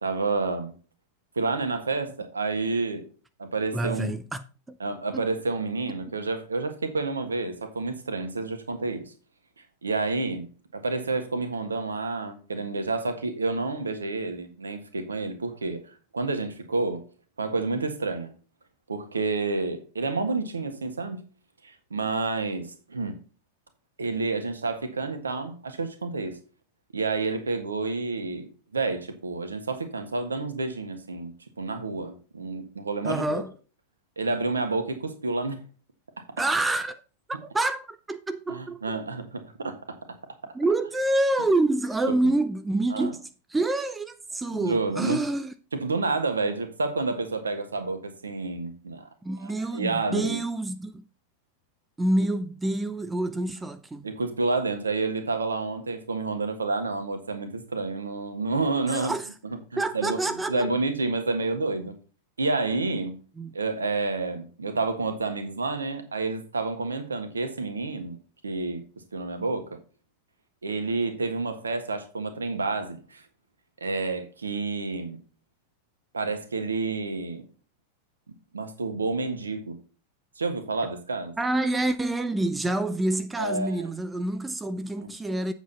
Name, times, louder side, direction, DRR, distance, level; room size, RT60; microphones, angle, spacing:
voice 1, 0.0-0.7 1.3-3.1 3.4-4.1 4.8-9.1 9.8-17.0 17.4-18.3 18.9-21.2 21.6-23.2 24.0-26.4 26.9-33.4 34.2-35.6 36.2-36.3 38.5-40.0 42.9-43.1 44.5-45.2 45.7-49.1 49.7-50.4 54.0-59.1 59.7-60.2 60.5-61.9 62.4-63.2 63.5-68.8 69.1-69.8 70.6-73.2 73.8-75.2 76.1-77.5 78.5-79.8 80.4-81.3 83.4-83.9 85.0-85.1, right 3 dB, 75° right, 1.5 m, -29 dB
voice 2, 3.7-4.8 5.1-5.3 33.0-33.5 36.4-37.0 37.3-38.8 40.5-43.2 43.5-45.5 49.2-51.0 52.0-54.1 58.9-59.3 59.8-60.7 63.4-63.5 81.4-85.5, right 2 dB, 10° right, 0.6 m, -27 dB
8.1 x 7.5 x 4.1 m
figure-of-eight pair, 90°, 0 cm